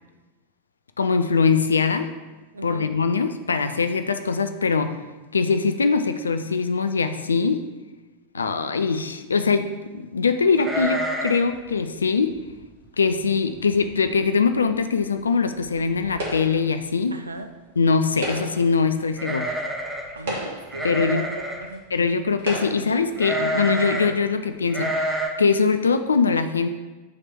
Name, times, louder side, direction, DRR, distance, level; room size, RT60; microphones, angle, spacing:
voice 1, 1.0-2.1 2.6-5.0 5.3-7.7 8.3-9.7 9.9-12.4 13.0-17.2 17.8-19.5 20.8-21.2 21.9-26.7, left 5 dB, 75° left, 9 dB, 0.4 m, -22 dB
voice 2, 2.5-2.9 8.4-8.7 17.1-17.5 20.1-21.3 21.6-21.8, right 2 dB, 80° right, 9 dB, 0.5 m, -36 dB
sound 1, 10.6-11.6 11.8-11.9 12.4-12.7 13.2-13.3 13.6-14.1 14.4-14.5 15.6-15.7 16.0-16.5 19.1-20.1 20.7-21.7 23.2-24.1 24.7-25.3, right 1 dB, 15° right, 0.8 m, -28 dB
sound 2, 16.2-16.7 18.1-18.7 19.6-19.7 20.2-20.8 21.7-21.8 22.4-23.0, right 1 dB, 55° right, 1.8 m, -31 dB
7.1 x 3.3 x 5.9 m, 1.2 s
figure-of-eight pair, 90°, 0 cm